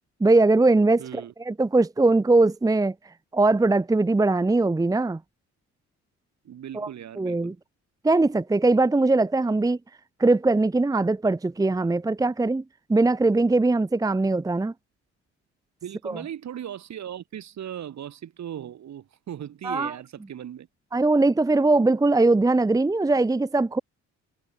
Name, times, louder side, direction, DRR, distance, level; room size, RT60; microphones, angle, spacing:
voice 1, 0.2-2.9 3.3-5.2 6.7-6.9 7.2-7.5 8.0-9.8 10.2-12.6 12.9-14.7 16.0-16.2 19.6-19.9 20.9-23.8, right 2 dB, 10° right, 0.7 m, -21 dB
voice 2, 1.0-1.3 6.4-7.6 15.8-20.7, right 10 dB, 65° right, 6.3 m, -38 dB
cardioid pair, 90°, 30 cm